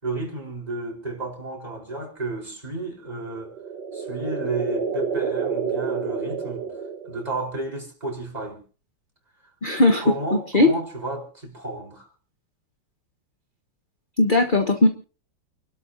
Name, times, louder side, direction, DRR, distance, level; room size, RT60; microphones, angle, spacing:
voice 1, 0.0-3.5 3.9-6.7 7.0-8.6 10.0-12.1, right 2 dB, 20° right, 4.9 m, -32 dB
sound 1, 3.3-7.5, right 6 dB, 60° right, 2.0 m, -29 dB
voice 2, 9.6-10.0 10.5-10.7 14.2-14.9, left 2 dB, 30° left, 1.3 m, -17 dB
29.5 x 12.5 x 2.8 m
omnidirectional pair, 2.2 m